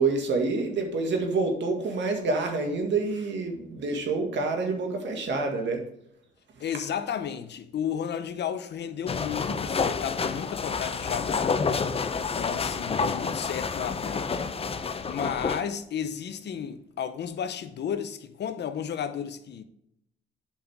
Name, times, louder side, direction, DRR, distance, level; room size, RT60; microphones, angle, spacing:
voice 1, 0.0-5.8, right 3 dB, 65° right, 2.0 m, -27 dB
voice 2, 6.6-11.6 12.2-14.4 14.7-19.6, left 8 dB, 60° left, 0.8 m, -33 dB
sound 1, 9.1-15.6, left 5 dB, 30° left, 0.6 m, -29 dB
8.5 x 5.5 x 3.5 m
cardioid pair, 90°, 20 cm